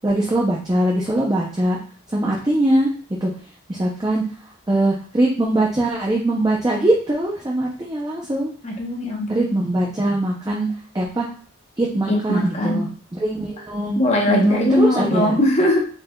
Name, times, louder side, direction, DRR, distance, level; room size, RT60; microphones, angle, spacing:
voice 1, 0.0-1.8 2.1-2.9 3.2-3.3 3.7-4.2 4.7-8.5 9.3-10.7 10.9-11.3 11.8-14.0 14.3-15.4, right 1 dB, 15° right, -3 dB, 0.5 m, -21 dB
voice 2, 8.6-9.4 12.1-12.8 14.0-15.8, left 1 dB, 30° left, 0 dB, 0.8 m, -20 dB
4.3 x 3.2 x 2.2 m, 0.43 s
head